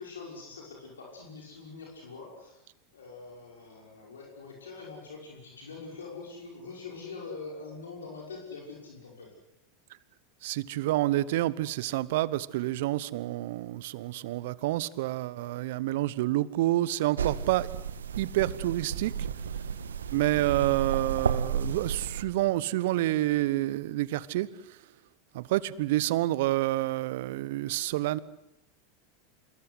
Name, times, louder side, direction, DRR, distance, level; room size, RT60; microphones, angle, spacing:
voice 1, 0.0-2.6 2.9-9.4, left 4 dB, 85° left, -1 dB, 5.9 m, -44 dB
voice 2, 10.4-17.7 18.2-19.1 20.1-24.5 25.3-28.2, right 16 dB, 65° right, 20 dB, 1.1 m, -28 dB
sound 1, 17.2-22.2, right 7 dB, 85° right, 1.6 m, -32 dB
27.0 x 22.0 x 8.1 m, 0.82 s
hypercardioid pair, 90°, 0 cm